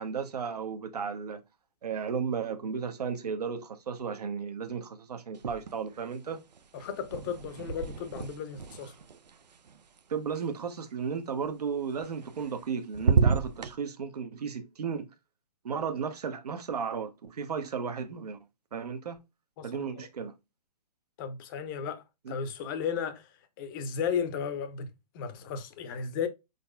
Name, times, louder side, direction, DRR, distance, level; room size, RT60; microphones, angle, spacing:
voice 1, 0.0-1.4 1.8-6.4 10.1-15.1 15.6-18.4 18.7-19.2 19.6-20.3 22.3-22.4, right 6 dB, 65° right, 0.9 m, -34 dB
sound 1, 5.3-6.1 6.3-10.4 12.1-12.7 12.9-13.7, right 5 dB, 80° right, 0.5 m, -30 dB
voice 2, 6.7-8.9 19.6-20.1 21.2-24.9 25.1-26.3, left 7 dB, 30° left, 0.7 m, -35 dB
4.5 x 3.9 x 2.2 m
figure-of-eight pair, 130°, 21 cm